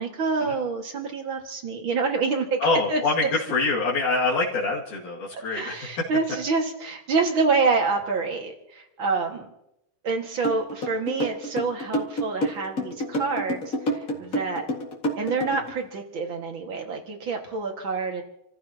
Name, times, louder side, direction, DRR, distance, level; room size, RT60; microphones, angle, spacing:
voice 1, 0.0-2.6 2.9-3.3 5.5-9.5 10.0-14.7 15.2-18.2, right 4 dB, 40° right, 3 dB, 2.3 m, -27 dB
voice 2, 2.6-5.8, left 3 dB, 70° left, -6 dB, 3.8 m, -25 dB
sound 1, 10.4-15.7, equal, 30° left, 2.0 m, -28 dB
29.0 x 15.5 x 2.9 m, 0.82 s
omnidirectional pair, 3.8 m